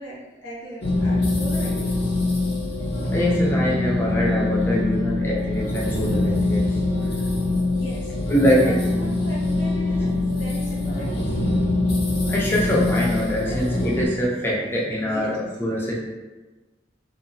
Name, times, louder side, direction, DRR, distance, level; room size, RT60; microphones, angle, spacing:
voice 1, 0.0-2.1 7.7-11.7 13.3-13.6 15.1-15.4, right 1 dB, 85° left, -7 dB, 1.1 m, -39 dB
sound 1, 0.8-14.1, left 2 dB, 60° left, 0.6 m, -23 dB
voice 2, 3.1-6.8 8.3-8.8 12.0-16.0, equal, 15° left, -4 dB, 0.3 m, -23 dB
2.8 x 2.1 x 2.5 m, 1.2 s
head